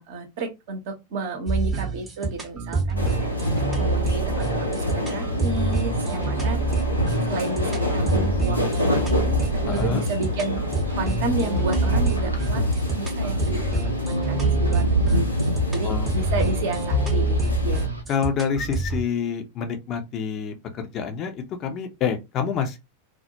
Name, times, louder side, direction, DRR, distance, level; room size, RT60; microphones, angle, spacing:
voice 1, 0.0-3.4 3.8-6.6 7.3-10.6 11.0-15.4 15.7-17.9, right 3 dB, 50° right, 0.7 m, -32 dB
sound 1, 1.5-19.0, right 3 dB, 15° right, 0.7 m, -27 dB
sound 2, 3.0-17.9, left 1 dB, 90° left, 0.6 m, -26 dB
voice 2, 9.7-10.0 15.8-16.1 16.4-16.5 18.1-22.8, left 6 dB, 35° left, 0.5 m, -27 dB
sound 3, 10.9-18.0, right 1 dB, 90° right, 0.5 m, -31 dB
2.2 x 2.1 x 2.7 m
figure-of-eight pair, 90°, 0 cm